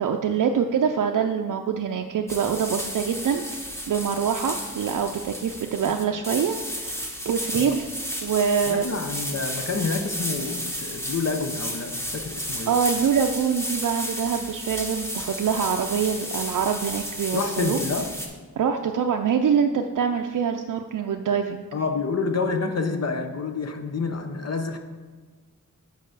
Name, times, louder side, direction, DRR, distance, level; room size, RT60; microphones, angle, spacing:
voice 1, 0.0-3.5 3.9-7.9 8.2-8.9 12.7-17.8 18.6-21.6, right 7 dB, 85° right, 3 dB, 0.5 m, -25 dB
sound 1, 2.3-18.3, equal, 10° left, 1.1 m, -33 dB
voice 2, 8.7-12.8 17.3-18.1 21.7-24.8, left 4 dB, 55° left, 6 dB, 0.6 m, -28 dB
6.6 x 4.8 x 6.4 m, 1.4 s
wide cardioid pair, 105°, 31 cm